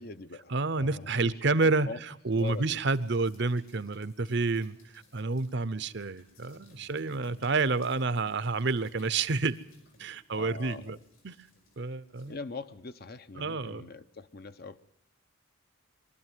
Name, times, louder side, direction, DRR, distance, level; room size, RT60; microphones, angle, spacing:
voice 1, 0.0-1.4 1.8-2.0 2.3-2.8 10.3-11.0 12.2-14.8, left 3 dB, 45° left, 0.7 m, -42 dB
voice 2, 0.5-1.9 2.2-9.6 10.0-11.0 11.2-11.3 11.8-12.4 13.4-13.9, right 3 dB, 55° right, 0.7 m, -29 dB
sound 1, 2.3-12.4, left 2 dB, 75° left, 5.5 m, -61 dB
23.0 x 13.0 x 9.3 m
head